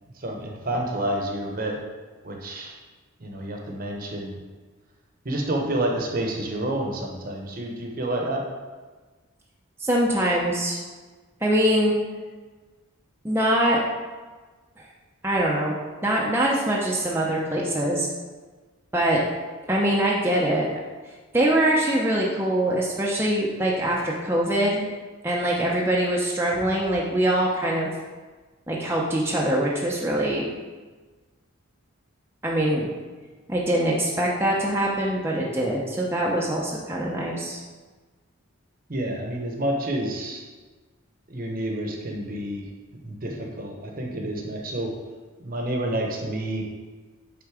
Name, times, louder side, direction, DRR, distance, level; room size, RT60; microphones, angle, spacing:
voice 1, 0.2-1.8 2.2-2.8 3.2-4.4 5.2-8.4 38.9-40.4 41.3-42.7 43.0-44.9 45.4-46.7, right 1 dB, 40° right, 1 dB, 1.0 m, -29 dB
voice 2, 9.8-10.8 11.4-11.9 13.2-13.8 15.2-15.8 16.0-18.1 18.9-19.2 19.7-20.7 21.3-24.8 25.2-27.9 28.7-30.5 32.4-32.9 33.5-37.6, right 1 dB, 10° right, -4 dB, 0.6 m, -23 dB
8.3 x 3.8 x 4.9 m, 1.3 s
head